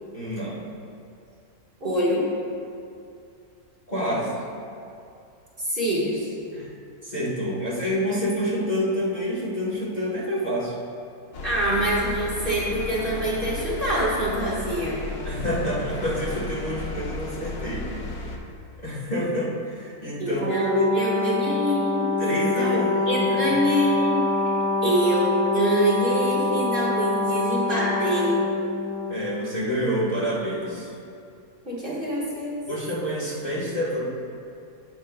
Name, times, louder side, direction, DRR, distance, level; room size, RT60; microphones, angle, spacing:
voice 1, 0.1-0.6 3.9-4.4 6.5-6.7 7.0-10.8 15.2-17.9 18.8-20.4 20.7-20.9 21.2-21.3 22.2-23.6 29.1-30.9 32.7-34.2, equal, 30° left, -7 dB, 1.2 m, -28 dB
voice 2, 1.8-2.3 5.6-6.3 11.4-15.0 20.2-22.8 23.1-24.5 24.8-28.5 31.6-32.6, right 1 dB, 35° right, -7 dB, 1.5 m, -25 dB
sound 1, 11.3-18.4, left 2 dB, 80° left, 1.3 m, -34 dB
Brass instrument, 20.4-29.1, left 3 dB, 75° right, 1.2 m, -25 dB
15.5 x 5.5 x 2.2 m, 2.5 s
omnidirectional pair, 1.6 m